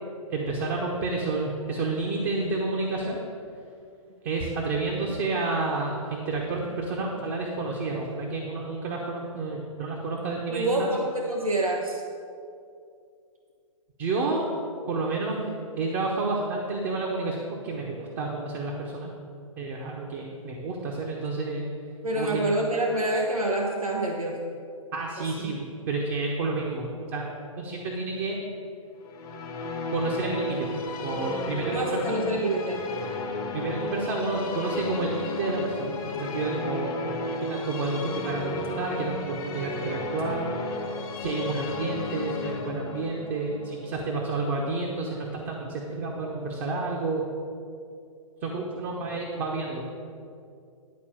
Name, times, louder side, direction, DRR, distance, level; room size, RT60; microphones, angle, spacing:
voice 1, 0.3-3.2 4.2-10.9 14.0-14.5 14.9-15.5 15.8-19.1 19.6-21.7 22.2-22.4 24.9-28.4 29.9-32.0 33.5-36.9 37.4-40.5 41.2-47.3 48.4-49.8, right 3 dB, 30° right, -1 dB, 1.1 m, -30 dB
voice 2, 10.5-12.0 22.0-24.5 25.2-25.5 31.7-32.8, right 1 dB, 85° right, -1 dB, 1.1 m, -27 dB
sound 1, 29.0-45.1, left 3 dB, 20° left, 0.9 m, -33 dB
11.0 x 4.4 x 7.3 m, 2.4 s
figure-of-eight pair, 120°, 18 cm